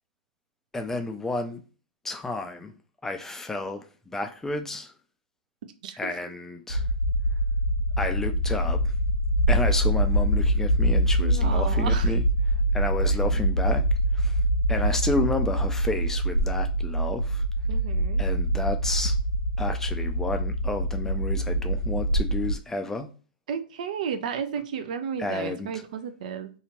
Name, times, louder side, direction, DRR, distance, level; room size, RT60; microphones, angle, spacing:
voice 1, 0.7-1.6 2.0-2.7 3.0-4.9 6.0-6.9 8.0-8.9 9.5-12.2 12.7-13.9 14.1-14.4 14.7-17.4 18.2-19.2 19.6-23.1 25.2-25.8, left 2 dB, 10° left, 0.4 m, -31 dB
sound 1, 6.7-22.6, right 1 dB, 75° left, 0.9 m, -24 dB
voice 2, 11.2-12.1 17.7-18.3 23.5-26.5, right 7 dB, 60° right, 0.4 m, -33 dB
2.8 x 2.3 x 3.0 m
hypercardioid pair, 110°, 5 cm